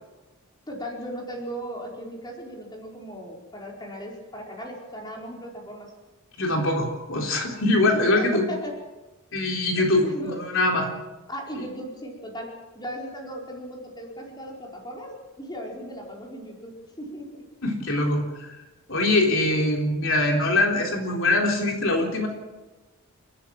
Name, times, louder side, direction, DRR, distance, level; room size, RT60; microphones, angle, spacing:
voice 1, 0.7-5.9 7.9-8.8 10.0-10.4 11.3-17.5, equal, 20° left, -1 dB, 4.7 m, -37 dB
voice 2, 6.4-8.4 9.3-10.9 17.6-18.6 18.9-22.3, left 2 dB, 65° left, 1 dB, 3.7 m, -23 dB
30.0 x 14.0 x 7.5 m, 1.1 s
head